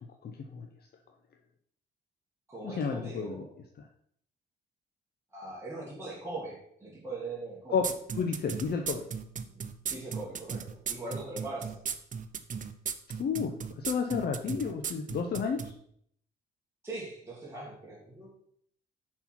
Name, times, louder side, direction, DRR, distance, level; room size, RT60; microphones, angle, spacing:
voice 1, 0.2-0.7 2.6-3.4 3.8-3.9 7.7-7.9 8.1-9.0 13.2-15.6, left 6 dB, 55° left, 4 dB, 0.7 m, -31 dB
voice 2, 2.5-3.5 5.3-7.8 9.5-9.6 9.9-11.8 16.8-18.3, right 2 dB, 10° right, -5 dB, 2.1 m, -41 dB
sound 1, 7.8-15.7, right 7 dB, 40° right, 0.6 m, -35 dB
5.7 x 4.4 x 5.9 m, 0.68 s
cardioid pair, 90°, 20 cm